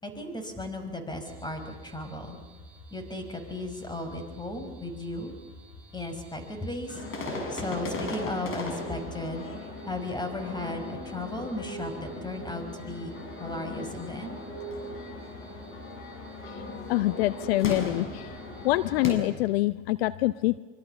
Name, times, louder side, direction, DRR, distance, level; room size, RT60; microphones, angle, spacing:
voice 1, 0.0-2.4 2.9-5.3 5.9-7.0 7.5-9.5 9.9-13.1 13.4-14.4, left 1 dB, 15° left, 7 dB, 5.6 m, -35 dB
sound 1, 1.2-19.1, left 1 dB, 5° right, 5.7 m, -50 dB
sound 2, 6.9-19.1, left 2 dB, 40° left, 6.3 m, -38 dB
voice 2, 16.9-18.3 18.6-20.6, left 18 dB, 70° left, 16 dB, 0.7 m, -26 dB
25.5 x 23.5 x 7.1 m, 1.3 s
hypercardioid pair, 80°, 32 cm